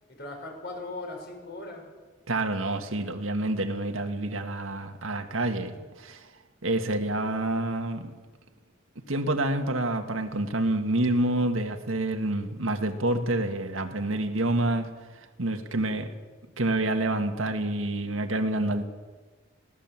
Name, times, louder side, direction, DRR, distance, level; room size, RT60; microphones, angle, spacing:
voice 1, 0.1-1.8 15.6-16.1, left 2 dB, 55° left, 2 dB, 5.9 m, -39 dB
voice 2, 2.3-6.3 6.6-8.1 9.0-14.9 15.2-16.1 16.6-18.8, right 2 dB, 90° right, 6 dB, 1.9 m, -28 dB
20.5 x 17.5 x 7.4 m, 1.3 s
head